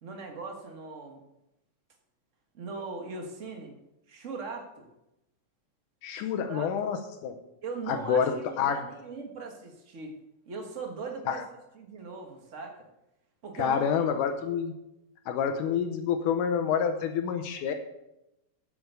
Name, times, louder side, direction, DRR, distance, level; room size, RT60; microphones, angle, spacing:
voice 1, 0.0-1.2 2.5-3.7 4.1-4.9 6.1-6.7 7.6-10.2 10.5-11.4 11.7-12.9 13.4-13.8, right 4 dB, 70° right, 3 dB, 0.7 m, -39 dB
voice 2, 6.0-7.0 7.2-7.4 7.9-8.8 11.3-11.4 13.6-14.7 15.3-17.7, left 7 dB, 80° left, 5 dB, 2.3 m, -28 dB
8.7 x 8.1 x 6.6 m, 0.89 s
omnidirectional pair, 3.7 m